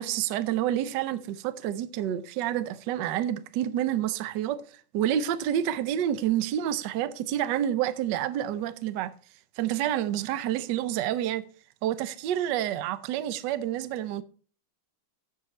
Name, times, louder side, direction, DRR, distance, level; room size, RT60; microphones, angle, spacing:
voice 1, 0.0-4.6 4.9-9.1 9.6-11.4 11.8-14.2, right 11 dB, 70° right, 1.2 m, -28 dB
10.0 x 7.4 x 4.2 m
omnidirectional pair, 2.3 m